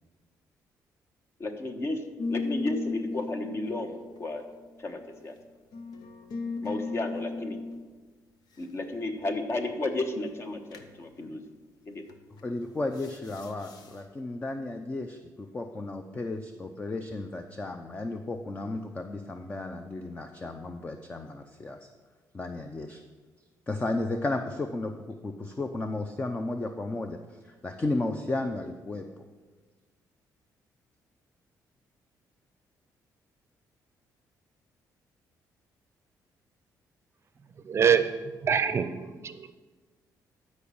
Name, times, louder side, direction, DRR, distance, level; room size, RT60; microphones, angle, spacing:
voice 1, 1.4-2.0 2.3-4.4 4.8-5.3 6.6-7.6 8.6-11.4 11.9-12.0, left 2 dB, 40° left, 6 dB, 1.2 m, -33 dB
sound 1, 2.2-5.0 5.7-7.8 10.7-10.9 12.1-12.4 12.9-13.9, left 3 dB, 75° left, 1.0 m, -36 dB
voice 2, 12.4-21.9 22.3-23.0 23.7-29.1, left 2 dB, 20° left, 6 dB, 0.6 m, -34 dB
voice 3, 37.7-38.0 38.4-39.5, right 7 dB, 40° right, 11 dB, 0.6 m, -24 dB
12.5 x 5.1 x 7.1 m, 1.4 s
cardioid pair, 120°, 7 cm